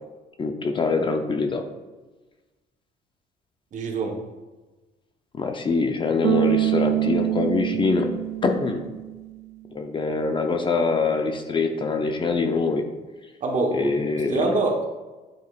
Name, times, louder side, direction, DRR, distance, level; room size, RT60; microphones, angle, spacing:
voice 1, 0.4-1.6 5.3-8.1 8.4-8.8 9.7-12.8 13.7-14.5, left 4 dB, 30° left, 5 dB, 0.6 m, -24 dB
voice 2, 3.7-4.2 13.4-13.9 14.3-14.8, right 3 dB, 45° right, 1 dB, 1.3 m, -24 dB
Bass guitar, 6.2-9.4, right 15 dB, 80° right, 0.5 m, -25 dB
9.5 x 4.7 x 2.5 m, 1.2 s
cardioid pair, 110°, 17 cm